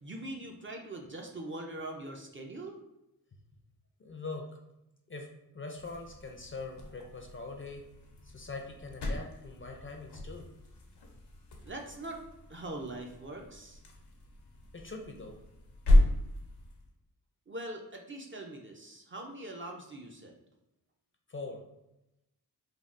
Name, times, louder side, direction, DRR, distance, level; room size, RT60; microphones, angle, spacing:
voice 1, 0.0-2.8 11.6-12.2 12.5-13.8 17.5-20.3, right 1 dB, 35° right, 2 dB, 0.4 m, -42 dB
voice 2, 4.0-4.6 5.1-5.3 5.5-7.8 8.2-10.5 14.7-15.4 21.3-21.6, left 3 dB, 35° left, 2 dB, 0.4 m, -42 dB
sound 1, 5.8-16.9, left 1 dB, 80° left, 0.6 m, -33 dB
3.4 x 2.2 x 2.4 m, 0.88 s
wide cardioid pair, 85°, 39 cm